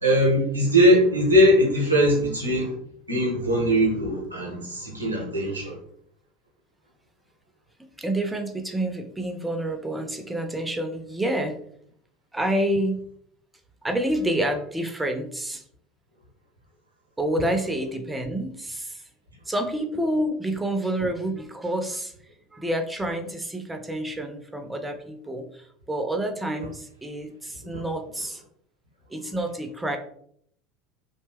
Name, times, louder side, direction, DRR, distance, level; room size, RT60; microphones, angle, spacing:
voice 1, 0.0-2.8 3.1-5.8 27.7-27.8, equal, 85° right, 0 dB, 0.7 m, -20 dB
voice 2, 8.0-11.6 12.3-13.0 13.8-15.6 17.2-19.0 19.5-22.1 22.5-28.4 29.1-30.0, right 1 dB, 10° right, 6 dB, 0.5 m, -28 dB
2.7 x 2.1 x 3.3 m, 0.66 s
figure-of-eight pair, 70°, 0 cm